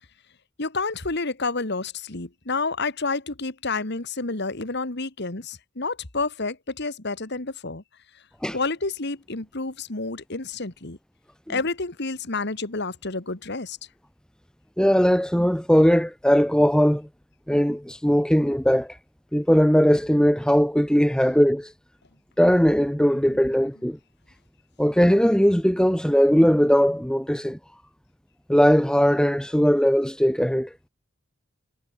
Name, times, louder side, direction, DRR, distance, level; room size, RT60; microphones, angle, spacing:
voice 1, 0.6-7.8 8.5-11.0 11.5-13.8 23.3-23.4, left 3 dB, 60° left, 2.2 m, -29 dB
voice 2, 14.8-17.1 17.5-19.0 19.3-21.7 22.4-24.0 24.8-27.6 28.5-30.7, equal, 5° left, 2.4 m, -19 dB
head